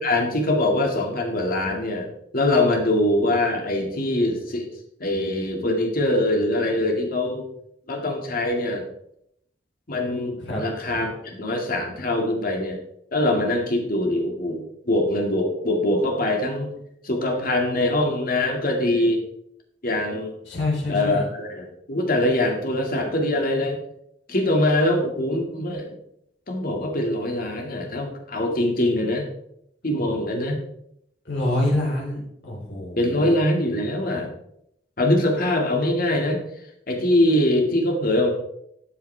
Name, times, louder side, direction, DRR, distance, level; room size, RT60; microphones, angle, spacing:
voice 1, 0.0-2.1 2.3-4.7 5.0-7.5 7.9-8.9 9.9-12.8 13.1-16.7 17.0-19.2 19.8-20.3 20.9-23.8 24.3-25.9 26.5-29.3 29.8-30.6 33.0-34.3 35.0-36.4 36.9-38.3, left 1 dB, 50° left, 2 dB, 2.0 m, -23 dB
voice 2, 10.4-11.0 20.5-21.2 31.3-33.3, left 1 dB, 65° left, -3 dB, 3.9 m, -26 dB
12.5 x 7.2 x 3.3 m, 0.75 s
head